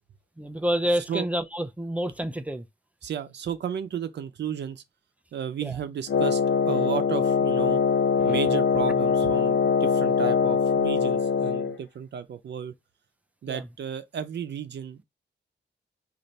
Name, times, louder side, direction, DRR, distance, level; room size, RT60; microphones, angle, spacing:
voice 1, 0.4-2.7 5.6-5.8 8.2-8.4 13.5-13.7, equal, 5° right, 0.4 m, -28 dB
voice 2, 3.0-4.8 5.3-6.4 6.7-7.8 8.2-12.7 13.4-15.0, right 8 dB, 65° right, 0.6 m, -33 dB
Wind instrument woodwind instrument, 6.1-11.8, left 5 dB, 85° left, 0.6 m, -23 dB
3.2 x 2.5 x 4.0 m
wide cardioid pair, 150°, 19 cm